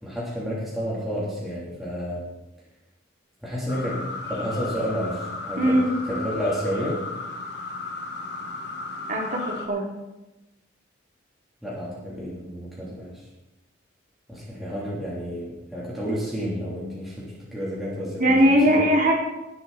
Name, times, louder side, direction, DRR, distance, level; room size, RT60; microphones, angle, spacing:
voice 1, 0.0-2.3 3.4-7.1 11.6-13.2 14.3-18.8, equal, ahead, -8 dB, 3.2 m, -31 dB
sound 1, 3.7-9.7, left 3 dB, 55° left, 1.7 m, -34 dB
voice 2, 5.6-5.9 9.1-9.8 18.2-19.1, equal, 45° right, -1 dB, 2.9 m, -19 dB
18.5 x 8.2 x 4.1 m, 1.0 s
head